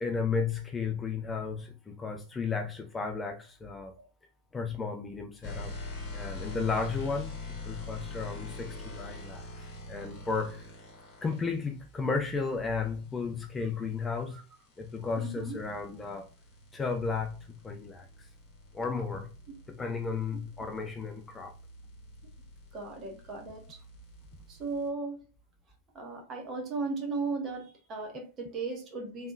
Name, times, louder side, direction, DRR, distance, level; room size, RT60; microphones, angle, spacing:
voice 1, 0.0-3.9 4.5-5.7 6.1-7.4 7.7-10.7 11.2-14.4 14.8-16.3 16.7-17.4 17.6-18.3 18.7-19.3 19.7-21.5, left 4 dB, 15° left, 0.4 m, -34 dB
sound 1, 5.4-11.4 13.9-24.9, left 2 dB, 35° left, 1.6 m, -45 dB
voice 2, 15.2-15.6 22.7-23.8 24.5-25.3 25.9-29.3, right 3 dB, 30° right, 1.2 m, -36 dB
3.6 x 3.2 x 2.4 m
figure-of-eight pair, 90°, 0 cm